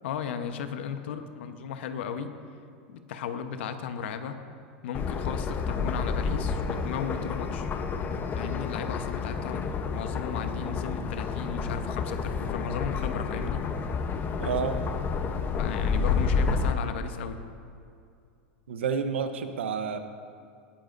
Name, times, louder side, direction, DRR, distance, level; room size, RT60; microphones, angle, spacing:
voice 1, 0.0-2.3 2.9-4.4 4.8-7.7 8.3-13.7 15.6-17.4, left 7 dB, 75° left, 8 dB, 1.0 m, -35 dB
sound 1, 4.9-16.7, left 5 dB, 30° left, 0.9 m, -30 dB
voice 2, 14.4-14.8 18.7-20.0, right 6 dB, 85° right, 9 dB, 0.9 m, -29 dB
19.0 x 12.5 x 2.6 m, 2.4 s
hypercardioid pair, 105°, 6 cm